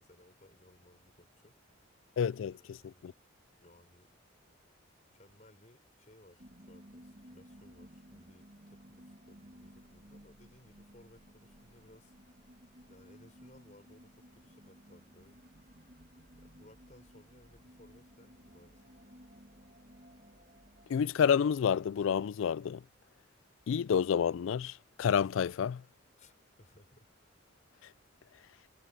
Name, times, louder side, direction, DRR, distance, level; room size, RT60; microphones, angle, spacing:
voice 1, 0.0-1.9 2.5-3.2 3.6-4.1 5.1-12.1 12.8-15.4 16.3-19.0 26.2-27.1, left 1 dB, 35° left, 4.5 m, -61 dB
voice 2, 2.2-3.1 20.9-22.8 23.7-25.8, left 7 dB, 75° left, 0.3 m, -29 dB
sound 1, 6.4-21.0, equal, 45° right, 2.3 m, -57 dB
head